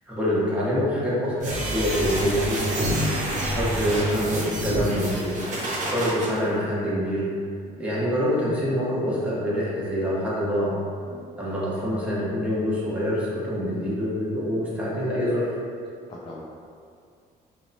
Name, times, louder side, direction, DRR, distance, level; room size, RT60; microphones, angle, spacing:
voice 1, 0.1-3.0 3.5-5.3 5.9-7.3 7.8-10.7 11.4-15.6, equal, 10° right, -8 dB, 0.8 m, -25 dB
sound 1, 1.4-6.3, right 1 dB, 45° right, 0.6 m, -27 dB
voice 2, 16.1-16.4, left 2 dB, 30° left, -4 dB, 0.3 m, -42 dB
2.8 x 2.0 x 2.6 m, 2.3 s
cardioid pair, 110°, 17 cm